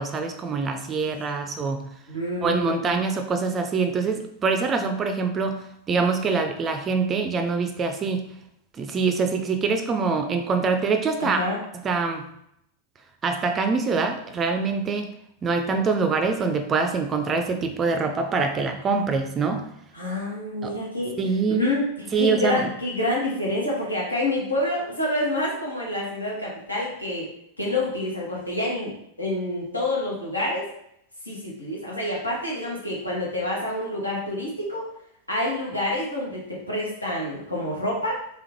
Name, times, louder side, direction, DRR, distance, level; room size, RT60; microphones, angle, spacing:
voice 1, 0.0-1.8 2.4-8.2 8.8-11.4 11.8-12.3 13.2-15.1 15.4-19.7 20.6-20.8 21.2-21.7 22.1-22.7, right 4 dB, 25° right, 6 dB, 0.4 m, -24 dB
voice 2, 2.1-2.8 11.2-11.6 19.9-21.2 21.5-27.3 27.6-30.7 31.2-34.9 35.3-38.2, left 1 dB, 85° left, -5 dB, 1.3 m, -27 dB
3.5 x 3.4 x 2.9 m, 0.75 s
figure-of-eight pair, 90°, 0 cm